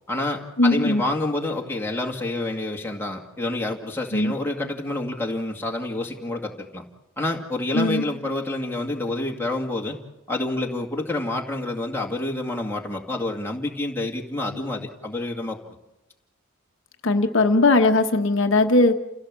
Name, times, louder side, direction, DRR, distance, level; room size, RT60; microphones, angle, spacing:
voice 1, 0.1-6.9 7.2-10.0 10.3-15.8, left 2 dB, 10° left, 0 dB, 2.1 m, -28 dB
voice 2, 0.6-1.0 4.1-4.3 7.7-8.0 17.0-19.0, left 2 dB, 65° left, 5 dB, 1.1 m, -19 dB
28.5 x 16.5 x 7.5 m, 0.97 s
head